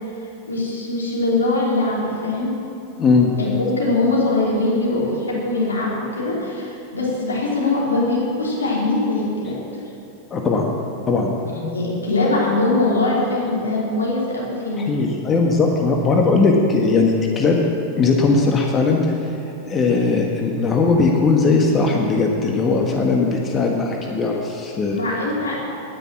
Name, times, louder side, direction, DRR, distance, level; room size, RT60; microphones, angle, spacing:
voice 1, 0.5-2.5 3.4-9.5 11.5-14.9 24.9-25.6, left 2 dB, 85° left, -5 dB, 3.4 m, -22 dB
voice 2, 3.0-3.3 10.3-10.7 11.1-11.4 14.8-17.6 18.0-19.0 19.7-25.0, left 4 dB, 25° left, 1 dB, 1.4 m, -18 dB
9.9 x 9.6 x 7.4 m, 2.7 s
figure-of-eight pair, 95°, 0 cm